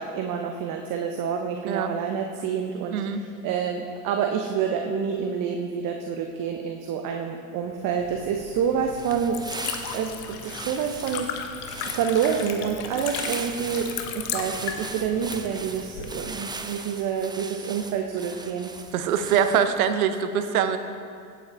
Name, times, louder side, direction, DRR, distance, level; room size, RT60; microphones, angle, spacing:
voice 1, 0.0-9.4 9.9-11.3 11.8-18.7, right 7 dB, 45° right, 3 dB, 1.0 m, -28 dB
Liquid, 7.9-16.4, left 7 dB, 60° left, 1.2 m, -36 dB
sound 1, 8.8-19.8, right 3 dB, 10° right, 0.6 m, -39 dB
voice 2, 18.9-20.8, right 8 dB, 80° right, 9 dB, 1.0 m, -23 dB
16.5 x 8.6 x 3.5 m, 2.2 s
hypercardioid pair, 90°, 43 cm